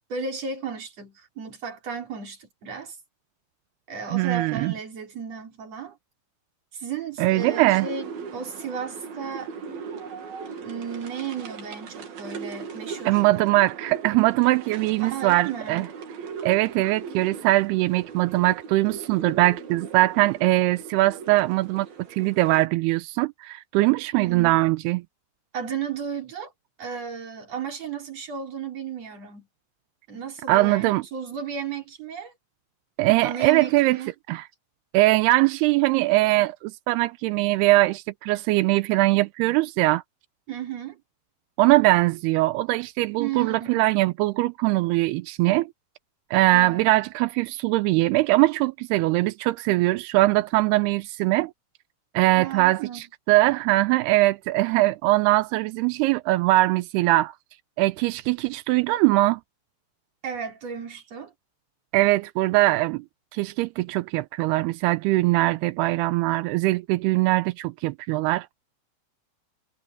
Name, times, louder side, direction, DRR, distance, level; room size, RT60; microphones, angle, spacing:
voice 1, 0.1-3.0 3.9-6.0 6.7-9.5 10.6-13.2 15.0-15.9 24.1-24.6 25.5-26.5 26.8-29.5 30.1-32.3 33.2-34.1 40.5-41.0 43.2-43.8 46.5-46.9 52.4-53.0 60.2-61.3, right 6 dB, 40° right, 4.7 m, -34 dB
voice 2, 4.1-4.7 7.2-7.9 13.1-15.9 16.4-25.0 30.5-31.0 33.0-34.0 34.3-34.5 34.9-40.0 41.6-45.7 46.3-51.5 52.1-57.3 57.8-59.4 61.9-63.0 63.3-68.5, right 19 dB, 85° right, 2.4 m, -21 dB
sound 1, 7.4-22.7, right 6 dB, 60° right, 4.3 m, -39 dB
omnidirectional pair, 5.2 m